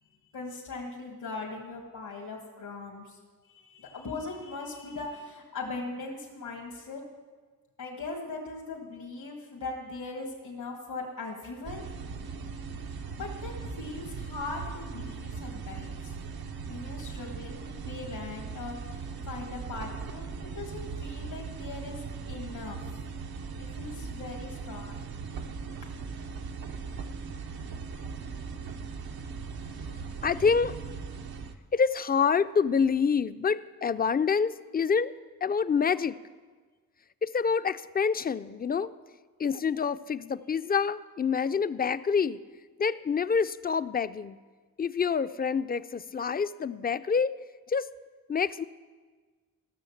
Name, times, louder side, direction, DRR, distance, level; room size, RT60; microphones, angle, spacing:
voice 1, 0.3-3.2 3.5-7.0 7.8-11.9 12.9-16.1 16.7-20.3 20.6-22.0 22.3-22.8 23.6-25.0 28.9-29.1, left 3 dB, 85° left, -2 dB, 2.0 m, -40 dB
sound 1, 11.6-31.5, right 5 dB, 80° right, 0.8 m, -39 dB
voice 2, 30.2-30.7 31.7-35.1 35.4-36.2 37.2-38.9 39.4-42.4 42.8-44.4 44.8-47.3 47.7-47.9 48.3-48.6, left 6 dB, 25° left, 14 dB, 0.4 m, -27 dB
14.5 x 6.5 x 7.2 m, 1.4 s
cardioid pair, 65°, 36 cm